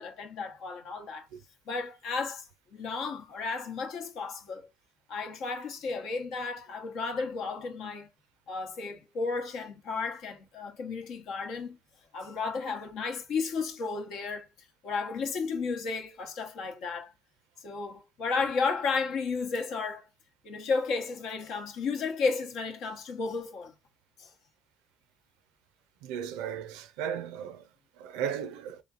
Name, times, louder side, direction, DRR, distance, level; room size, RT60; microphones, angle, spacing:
voice 1, 0.0-1.3 1.7-4.6 5.1-8.1 8.5-11.8 12.1-14.5 14.8-17.1 17.6-20.1 20.4-23.7 24.2-24.3, left 4 dB, 75° left, 0.9 m, -33 dB
voice 2, 26.0-27.6 28.0-28.8, right 8 dB, 85° right, 0.4 m, -35 dB
3.3 x 3.1 x 2.4 m
supercardioid pair, 70°, 0 cm